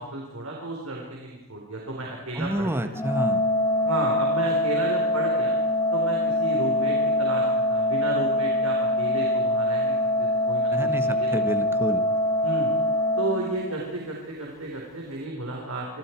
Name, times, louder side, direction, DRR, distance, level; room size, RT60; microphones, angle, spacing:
voice 1, 0.0-2.9 3.8-5.6 5.9-11.3 12.4-12.7 13.2-15.9, right 2 dB, 70° right, -1 dB, 4.4 m, -33 dB
voice 2, 2.3-3.4 10.7-12.0, equal, 10° right, 8 dB, 1.5 m, -29 dB
Organ, 2.9-14.0, left 1 dB, 15° left, 3.4 m, -24 dB
28.5 x 25.0 x 4.7 m, 1.1 s
head